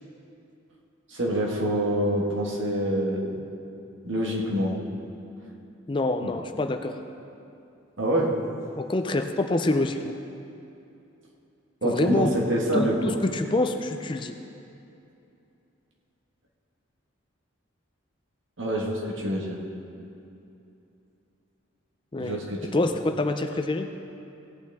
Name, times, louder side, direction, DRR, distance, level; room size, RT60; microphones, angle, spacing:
voice 1, 1.1-3.4 4.0-4.8 6.2-6.3 8.0-8.4 11.8-13.2 18.6-19.6 22.2-22.8, right 1 dB, 70° right, -2 dB, 1.7 m, -26 dB
voice 2, 5.9-7.0 8.8-10.1 11.8-12.3 12.7-14.3 22.1-22.4 22.7-23.9, left 2 dB, 25° left, 6 dB, 0.4 m, -26 dB
17.0 x 8.8 x 3.5 m, 2.7 s
head